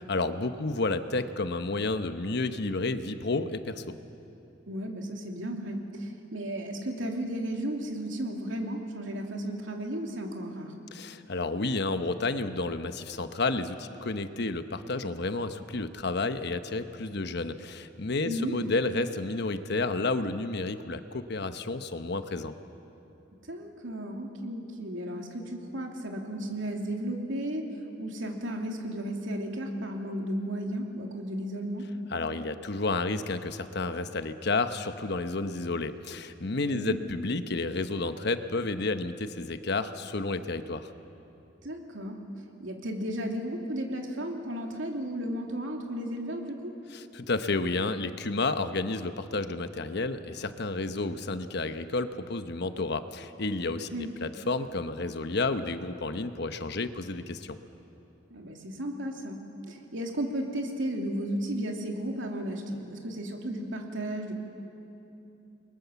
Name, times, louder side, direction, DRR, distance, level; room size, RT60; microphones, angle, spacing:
voice 1, 0.1-4.0 10.9-22.5 32.1-40.9 46.9-57.6, left 3 dB, 60° left, 9 dB, 1.1 m, -31 dB
voice 2, 4.7-10.7 18.2-18.5 23.5-27.7 28.0-31.8 36.7-37.0 41.6-42.2 42.6-46.7 53.9-54.1 58.3-59.4 59.7-64.3, right 1 dB, 75° right, 1 dB, 3.1 m, -34 dB
29.5 x 22.5 x 7.1 m, 2.9 s
head